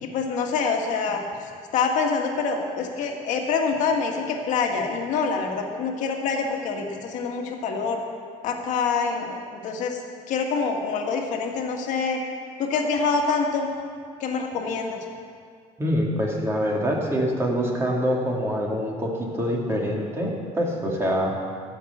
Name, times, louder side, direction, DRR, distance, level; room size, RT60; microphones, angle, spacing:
voice 1, 0.0-1.2 1.7-8.0 8.4-10.0 10.3-12.2 12.6-13.7 14.2-15.0, left 5 dB, 65° left, 2 dB, 1.7 m, -26 dB
voice 2, 15.8-21.5, equal, 20° right, -1 dB, 2.4 m, -25 dB
15.0 x 5.8 x 8.0 m, 2.1 s
cardioid pair, 120°, 13 cm